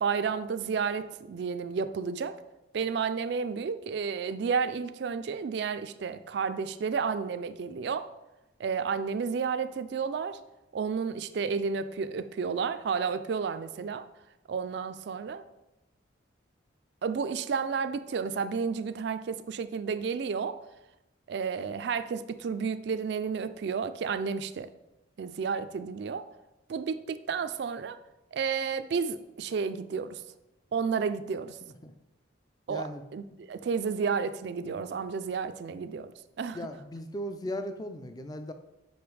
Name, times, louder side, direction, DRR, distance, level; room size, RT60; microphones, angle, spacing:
voice 1, 0.0-2.4 2.7-8.1 8.6-10.4 10.7-14.1 14.5-15.4 17.0-20.6 21.3-24.7 25.2-26.3 26.7-28.0 28.3-30.2 30.7-31.6 32.7-36.1 36.4-36.7, right 5 dB, 60° right, 0.3 m, -31 dB
voice 2, 32.7-33.0 36.5-38.5, equal, 20° left, 0.3 m, -37 dB
5.2 x 5.1 x 4.7 m
head